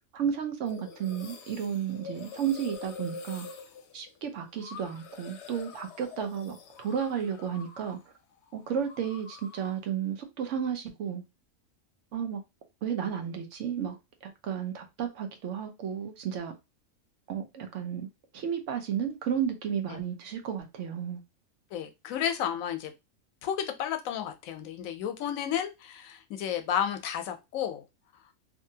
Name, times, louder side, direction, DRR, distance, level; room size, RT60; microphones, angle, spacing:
voice 1, 0.1-3.5 3.9-8.0 8.5-11.2 12.1-12.4 12.8-14.0 14.2-16.5 17.3-18.1 18.3-21.2, right 8 dB, 70° right, 0.9 m, -33 dB
sound 1, 0.7-8.1 8.3-9.9, left 5 dB, 65° left, 0.8 m, -46 dB
voice 2, 21.7-22.9 23.4-27.8, left 9 dB, 90° left, 1.0 m, -32 dB
2.6 x 2.6 x 2.7 m
omnidirectional pair, 1.4 m